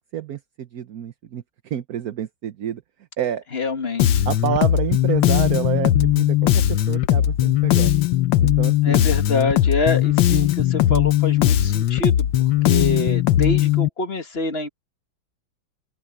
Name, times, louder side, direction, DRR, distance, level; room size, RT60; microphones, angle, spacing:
voice 1, 0.1-2.8 3.2-3.4 4.3-7.9 8.4-9.1, right 10 dB, 60° right, 1.2 m, -28 dB
voice 2, 3.5-4.1 8.8-14.7, left 3 dB, 35° left, 1.7 m, -26 dB
Bass guitar, 4.0-13.9, left 12 dB, 80° left, 1.6 m, -19 dB
open air
omnidirectional pair, 2.0 m